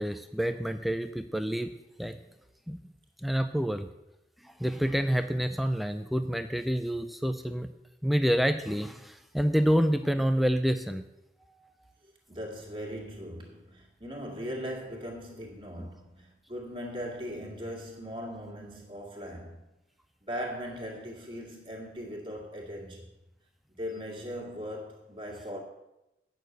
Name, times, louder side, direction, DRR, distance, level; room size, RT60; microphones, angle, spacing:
voice 1, 0.0-1.7 2.0-2.2 2.7-2.8 3.2-3.9 4.4-7.7 8.0-11.0, equal, ahead, 0.3 m, -28 dB
voice 2, 12.3-19.6 20.3-23.1 23.8-25.6, equal, 30° right, 2.1 m, -39 dB
8.8 x 6.5 x 7.8 m
head